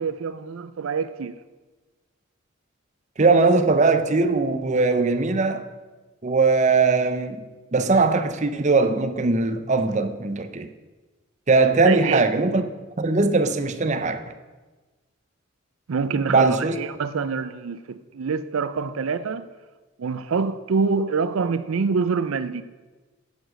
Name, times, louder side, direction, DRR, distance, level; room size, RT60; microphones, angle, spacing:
voice 1, 0.0-1.4 11.8-12.2 15.9-19.5 20.0-22.6, right 5 dB, 90° right, 0.5 m, -26 dB
voice 2, 3.2-5.6 6.2-7.4 7.7-10.7 11.5-12.6 13.0-14.2 16.3-16.8, right 3 dB, 35° right, 0.6 m, -20 dB
10.0 x 7.1 x 6.4 m
head